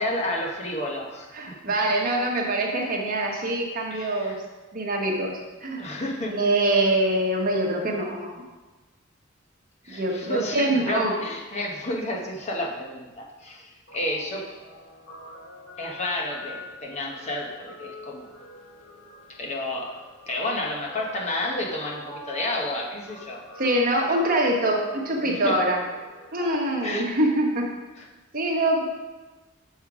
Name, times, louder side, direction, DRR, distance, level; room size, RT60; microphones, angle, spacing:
voice 1, 0.0-1.5 3.9-4.4 5.8-6.4 9.8-14.5 15.8-18.3 19.4-20.0 20.3-23.4 25.2-25.6 26.4-27.1 28.0-28.1, left 1 dB, 35° left, -1 dB, 1.0 m, -31 dB
voice 2, 1.3-4.4 4.7-5.8 6.3-8.4 10.0-11.1 23.6-25.8 26.3-27.7 28.3-28.8, right 1 dB, 45° right, 0 dB, 1.1 m, -24 dB
Guitar, 13.9-26.6, left 1 dB, 60° left, 2.1 m, -44 dB
6.5 x 5.4 x 4.8 m, 1.2 s
head